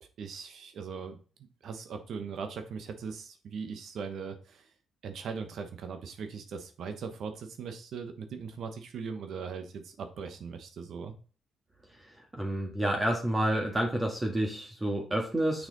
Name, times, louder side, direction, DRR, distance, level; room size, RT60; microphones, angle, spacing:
voice 1, 0.0-1.2 1.6-4.7 5.0-11.1, right 5 dB, 65° right, 7 dB, 1.1 m, -39 dB
voice 2, 12.4-15.7, right 1 dB, 20° right, 1 dB, 1.7 m, -29 dB
6.6 x 5.9 x 4.0 m, 0.38 s
cardioid pair, 90°, 0 cm